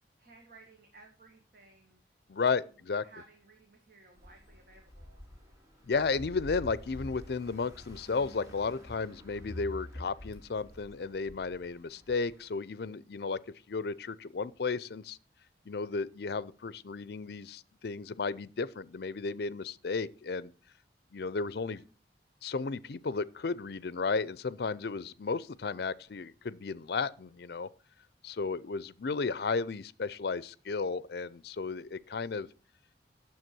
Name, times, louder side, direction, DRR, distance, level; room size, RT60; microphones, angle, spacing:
voice 1, 0.2-2.0 2.5-5.2 21.7-21.8 28.4-28.7, right 3 dB, 55° right, 1.9 m, -58 dB
voice 2, 2.3-3.0 5.8-13.4 13.7-15.2 15.7-20.5 21.1-21.8 22.4-27.7 28.2-32.5, left 4 dB, 60° left, 0.5 m, -34 dB
sound 1, 4.2-12.5, left 1 dB, 20° right, 2.4 m, -48 dB
9.4 x 7.0 x 6.1 m
head